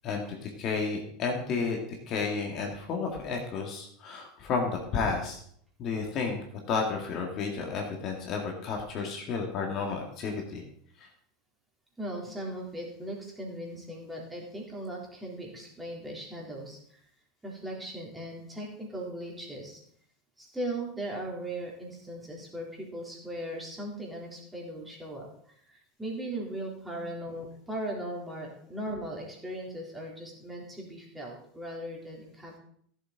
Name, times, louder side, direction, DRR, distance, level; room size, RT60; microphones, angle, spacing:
voice 1, 0.0-5.4 5.8-10.6 11.0-11.1 27.0-27.1, left 4 dB, 40° left, 1 dB, 2.1 m, -32 dB
voice 2, 12.0-17.0 17.4-19.8 20.4-32.6, right 1 dB, 10° right, -2 dB, 3.6 m, -38 dB
15.5 x 7.3 x 4.0 m, 0.63 s
figure-of-eight pair, 80°, 0 cm